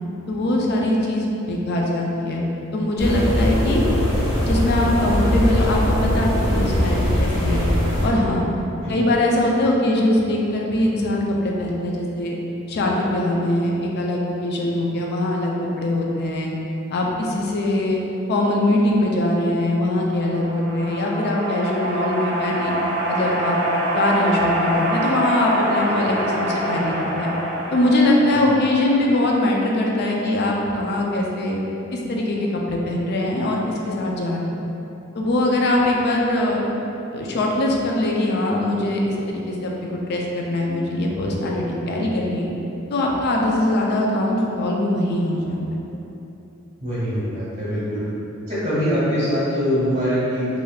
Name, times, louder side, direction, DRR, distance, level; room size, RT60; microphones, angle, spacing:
voice 1, 0.3-2.4 2.7-3.8 4.5-7.7 8.0-8.4 8.9-12.3 12.7-16.5 16.9-18.0 18.3-22.8 23.1-23.6 23.9-27.3 27.7-31.6 31.9-33.6 33.9-34.4 35.1-36.6 37.1-42.5 42.9-45.6, left 1 dB, 50° left, -1 dB, 0.4 m, -22 dB
sound 1, 3.0-8.1, left 1 dB, 65° left, 0.8 m, -21 dB
sound 2, 19.9-29.5, equal, 55° right, 0.7 m, -25 dB
voice 2, 46.8-48.0 48.5-50.5, equal, 35° right, -11 dB, 1.2 m, -23 dB
3.2 x 2.5 x 2.3 m, 3.0 s
head